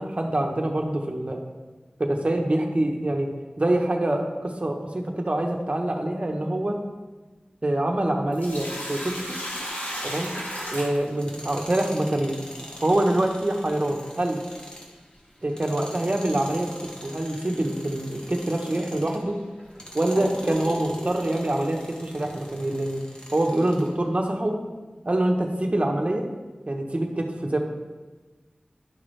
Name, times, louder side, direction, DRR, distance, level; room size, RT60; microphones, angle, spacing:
voice 1, 0.0-1.4 2.0-3.3 3.6-6.8 7.6-9.4 10.0-10.3 10.7-12.4 12.8-14.4 15.4-19.4 19.9-23.0 23.3-24.6 25.0-26.3 26.7-27.6, right 1 dB, 45° right, 2 dB, 1.0 m, -25 dB
Sink (filling or washing), 8.3-11.7 14.1-14.2 16.1-16.3 16.8-16.9 17.7-17.8 18.5-18.6 19.3-21.2, equal, 70° left, 2.0 m, -34 dB
Tools, 11.1-19.3 19.7-23.9, equal, 30° left, 1.4 m, -43 dB
11.0 x 5.9 x 3.3 m, 1.3 s
wide cardioid pair, 55°, 3 cm